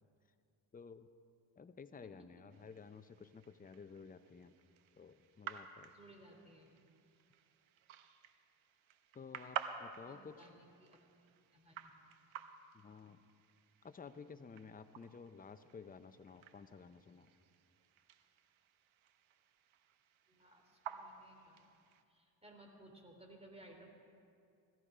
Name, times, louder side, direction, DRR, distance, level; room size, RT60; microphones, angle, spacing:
voice 1, 0.7-1.1 1.6-4.5 4.9-5.9 9.1-10.5 12.7-13.2 13.8-17.3, left 5 dB, 20° left, 10 dB, 0.6 m, -53 dB
sound 1, 2.5-22.0, right 9 dB, 80° right, 1.0 m, -52 dB
voice 2, 5.9-6.7 10.0-11.0 11.5-11.9 20.3-21.8 22.1-23.9, right 1 dB, 15° right, 1 dB, 3.4 m, -60 dB
18.5 x 14.0 x 5.0 m, 2.5 s
cardioid pair, 80°, 47 cm